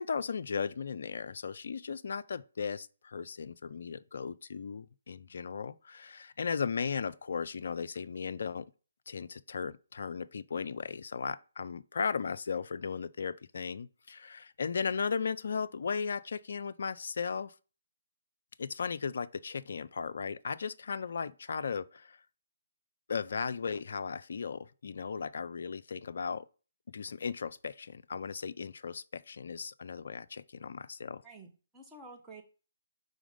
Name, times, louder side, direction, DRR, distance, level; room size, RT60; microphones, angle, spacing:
voice 1, 0.0-8.7 9.1-17.5 18.6-22.2 23.1-26.4 26.9-31.2, left 5 dB, 60° left, 0.3 m, -36 dB
voice 2, 31.2-32.4, right 3 dB, 5° right, 1.1 m, -50 dB
4.8 x 4.0 x 5.1 m
figure-of-eight pair, 140°, 0 cm